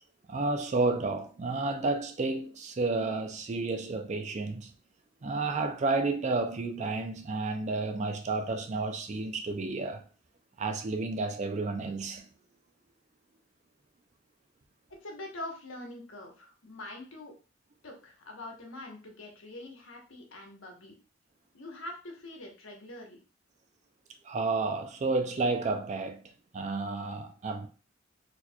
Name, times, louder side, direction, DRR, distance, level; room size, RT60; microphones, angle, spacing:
voice 1, 0.3-4.7 5.2-10.0 10.6-12.3 24.2-26.2 26.5-27.7, right 3 dB, 35° right, 0.4 m, -31 dB
voice 2, 15.0-17.3 17.8-21.0 21.5-23.2, left 1 dB, 80° left, 1.0 m, -44 dB
4.3 x 2.9 x 2.2 m
head